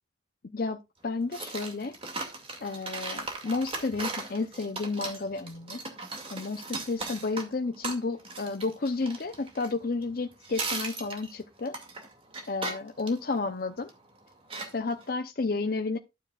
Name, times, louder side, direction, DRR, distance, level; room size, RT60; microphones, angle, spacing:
voice 1, 0.5-2.0 2.6-5.8 6.3-11.8 12.5-13.9 14.7-16.0, left 3 dB, 50° left, 0.6 m, -31 dB
sound 1, 1.3-10.2 10.4-14.0 14.5-15.1, right 3 dB, 30° right, 2.2 m, -37 dB
12.0 x 9.2 x 2.4 m
head